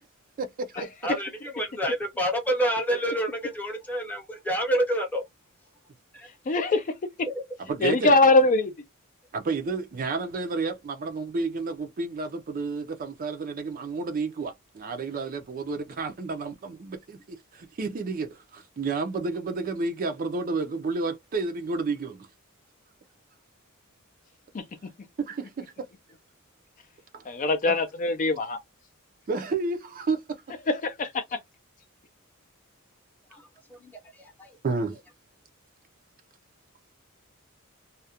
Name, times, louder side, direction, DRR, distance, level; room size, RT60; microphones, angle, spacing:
voice 1, 0.4-0.9 7.7-8.1 9.3-22.3 25.2-25.7 27.1-27.2 27.7-27.8 29.3-30.4 34.6-35.0, right 4 dB, 40° right, 0.4 m, -31 dB
voice 2, 1.0-5.2 6.1-6.3 7.3-7.4 33.3-34.5, equal, 10° left, 0.8 m, -28 dB
voice 3, 6.5-6.8 7.8-8.7 27.3-28.6 30.7-31.2, left 2 dB, 35° left, 0.4 m, -22 dB
2.3 x 2.1 x 2.7 m
head